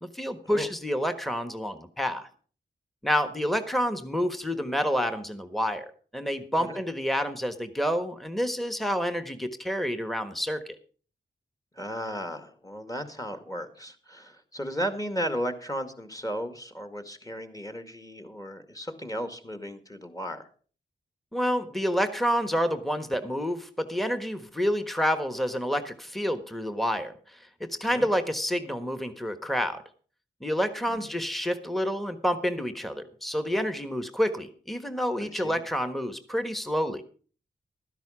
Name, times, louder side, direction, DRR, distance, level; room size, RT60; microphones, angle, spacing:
voice 1, 0.0-2.3 3.0-10.6 21.3-29.8 30.4-37.0, equal, ahead, 10 dB, 1.4 m, -28 dB
voice 2, 11.8-20.5 27.9-28.1 30.9-31.1 35.2-35.6, equal, 15° left, 8 dB, 2.1 m, -35 dB
12.5 x 10.5 x 5.0 m, 0.41 s
cardioid pair, 55°, 20 cm